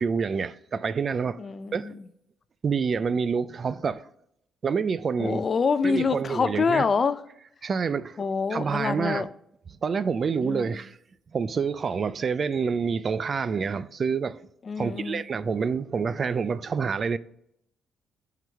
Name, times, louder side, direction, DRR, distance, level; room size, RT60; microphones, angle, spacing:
voice 1, 0.0-1.4 1.7-2.0 2.6-4.0 4.6-5.4 5.8-6.8 7.6-8.2 8.5-9.3 9.8-11.0 11.3-14.4 14.8-17.2, right 5 dB, 45° right, 0.3 m, -27 dB
voice 2, 1.4-2.0 5.2-7.2 8.2-9.3 10.4-10.8 14.7-15.2, left 5 dB, 40° left, 0.4 m, -26 dB
9.0 x 3.9 x 4.5 m
cardioid pair, 90°, 0 cm